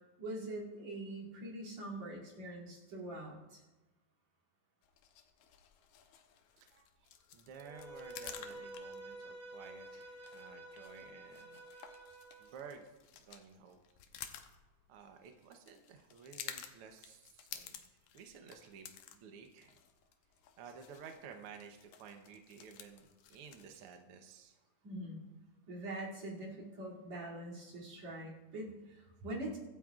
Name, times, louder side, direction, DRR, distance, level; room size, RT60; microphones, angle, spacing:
voice 1, 0.2-3.6 24.8-25.2 25.7-29.6, right 1 dB, 55° right, -6 dB, 3.9 m, -43 dB
sound 1, 4.8-24.0, left 9 dB, 80° left, 2.2 m, -53 dB
voice 2, 6.6-11.6 11.9-12.0 12.4-12.9 13.2-13.8 14.9-17.8 18.1-19.8 20.6-24.6, right 6 dB, 75° right, 4 dB, 1.3 m, -54 dB
Bowed string instrument, 7.5-12.5, right 1 dB, 5° right, 1.4 m, -50 dB
24.0 x 8.3 x 2.4 m, 1.1 s
omnidirectional pair, 3.7 m